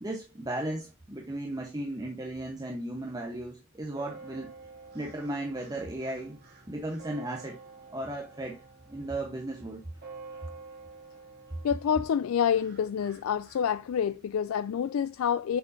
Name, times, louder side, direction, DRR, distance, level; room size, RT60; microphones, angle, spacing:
voice 1, 0.0-4.5 4.9-7.6 7.9-9.8, right 1 dB, 20° right, 0.9 m, -36 dB
sound 1, 3.9-14.4, right 4 dB, 45° right, 2.7 m, -50 dB
voice 2, 11.6-15.6, left 8 dB, 85° left, 0.3 m, -28 dB
6.8 x 6.1 x 2.6 m
head